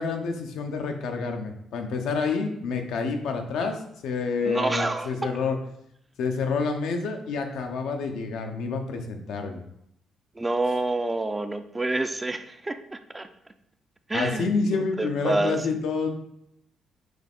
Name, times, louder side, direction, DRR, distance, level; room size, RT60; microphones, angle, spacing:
voice 1, 0.0-5.6 6.2-9.6 14.1-16.1, left 4 dB, 85° left, 4 dB, 0.7 m, -28 dB
voice 2, 4.4-5.3 10.4-13.3 14.1-15.8, right 2 dB, 20° right, 9 dB, 0.4 m, -28 dB
6.2 x 2.4 x 3.5 m, 0.75 s
cardioid pair, 90°, 0 cm